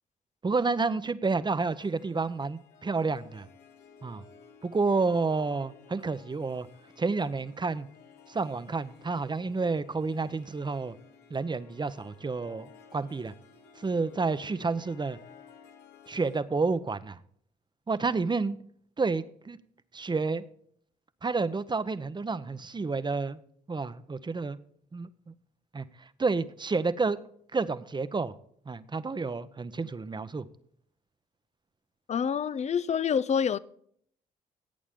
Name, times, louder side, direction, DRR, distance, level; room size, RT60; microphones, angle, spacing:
voice 1, 0.4-3.5 4.0-4.2 4.6-6.7 7.0-7.9 8.3-10.9 11.3-13.3 13.8-15.2 16.1-17.2 17.9-18.6 19.0-19.6 19.9-20.4 21.2-23.4 23.7-24.6 24.9-25.3 25.7-27.2 27.5-28.3 28.7-30.5, right 4 dB, 25° right, 0.8 m, -30 dB
Harp, 1.5-16.4, left 6 dB, 80° left, 1.5 m, -55 dB
voice 2, 32.1-33.6, left 7 dB, 40° left, 0.6 m, -27 dB
16.5 x 8.5 x 3.7 m
hypercardioid pair, 50°, 18 cm